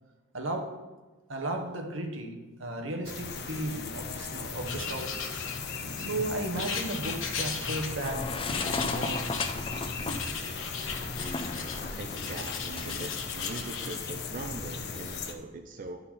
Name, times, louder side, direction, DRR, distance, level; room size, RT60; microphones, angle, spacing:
voice 1, 0.3-0.9 1.3-5.2 6.0-8.3 8.6-9.3, right 1 dB, 80° right, 1.3 m, -35 dB
sound 1, 3.0-15.3, left 4 dB, 60° left, 0.9 m, -37 dB
Writing, 4.6-6.0 6.6-8.2 8.5-9.6 10.1-11.8 12.1-14.0, left 5 dB, 75° left, 1.1 m, -37 dB
sound 2, 8.0-13.0, left 3 dB, 30° left, 0.5 m, -36 dB
voice 2, 12.0-16.0, right 2 dB, 45° right, 0.6 m, -41 dB
11.5 x 5.5 x 4.2 m
head